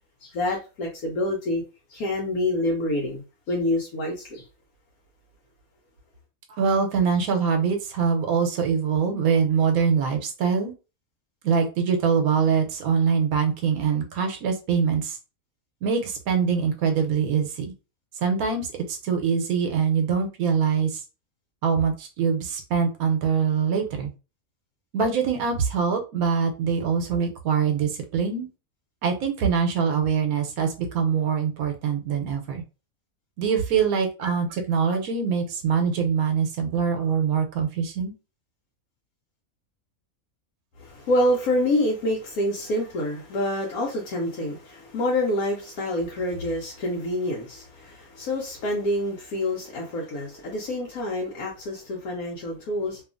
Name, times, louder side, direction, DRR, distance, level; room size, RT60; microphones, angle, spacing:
voice 1, 0.2-1.6 1.9-3.2 3.5-4.4 40.8-53.0, left 1 dB, 80° left, 1.1 m, -27 dB
voice 2, 6.6-10.7 11.4-15.2 15.8-17.7 18.2-21.0 21.6-24.1 24.9-28.5 29.0-32.6 33.4-38.1, right 6 dB, 80° right, 1.1 m, -24 dB
2.8 x 2.4 x 2.4 m
omnidirectional pair, 1.5 m